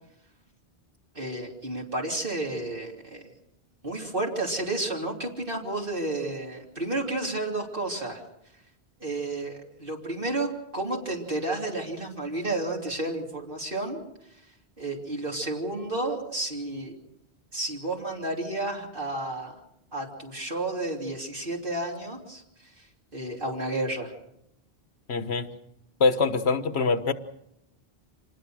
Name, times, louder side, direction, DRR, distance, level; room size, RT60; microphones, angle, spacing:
voice 1, 1.1-3.3 3.8-8.2 9.0-14.0 14.8-16.9 17.5-19.5 19.9-22.4 23.1-24.1, right 2 dB, 55° right, -1 dB, 3.4 m, -31 dB
voice 2, 25.1-25.5 26.0-27.1, left 4 dB, 85° left, 10 dB, 1.5 m, -24 dB
26.5 x 20.0 x 6.4 m, 0.80 s
omnidirectional pair, 1.1 m